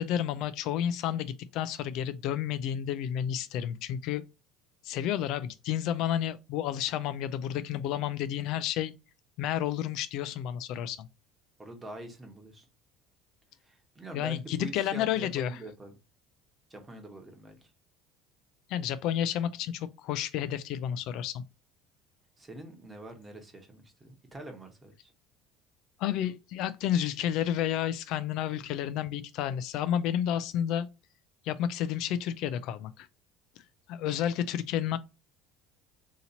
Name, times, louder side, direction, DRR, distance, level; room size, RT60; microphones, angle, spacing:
voice 1, 0.0-4.2 4.8-8.9 9.4-11.1 14.1-15.6 18.7-21.4 26.0-30.9 31.4-33.1 33.9-35.0, left 10 dB, 65° left, 0.3 m, -31 dB
voice 2, 11.6-12.6 13.6-15.9 16.7-17.7 22.4-25.1, right 1 dB, 15° right, 1.1 m, -45 dB
2.8 x 2.8 x 3.9 m
supercardioid pair, 120°, 0 cm